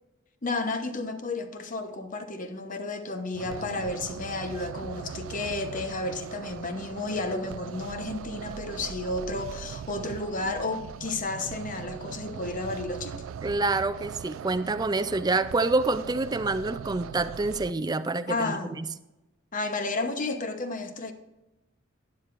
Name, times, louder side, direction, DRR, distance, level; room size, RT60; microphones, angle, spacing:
voice 1, 0.4-13.2 18.3-18.8 19.5-21.1, left 3 dB, 40° left, 1.0 m, -32 dB
sound 1, 3.3-17.7, right 7 dB, 85° right, 0.3 m, -40 dB
voice 2, 13.4-18.9, right 3 dB, 20° right, 0.4 m, -27 dB
12.0 x 9.6 x 2.5 m
head